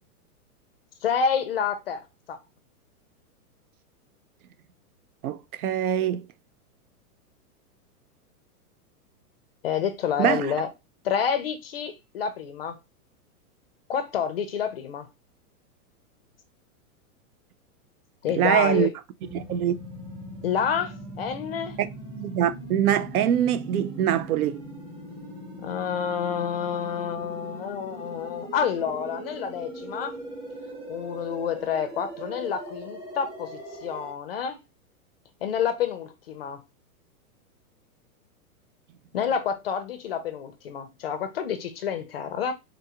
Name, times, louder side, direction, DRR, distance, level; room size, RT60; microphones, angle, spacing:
voice 1, 1.0-2.0 2.3-2.4 9.6-10.7 11.0-12.8 13.9-15.1 18.2-18.9 20.4-21.8 25.6-30.2 30.9-34.6 35.4-36.6 39.1-42.5, left 7 dB, 45° left, 0.4 m, -28 dB
voice 2, 5.2-6.2 10.2-10.5 18.3-18.9 19.3-19.7 21.8-21.9 22.2-24.6, right 10 dB, 70° right, 0.5 m, -24 dB
sound 1, 19.2-34.1, right 1 dB, 25° right, 1.1 m, -40 dB
3.7 x 2.4 x 2.7 m
supercardioid pair, 165°, 45 cm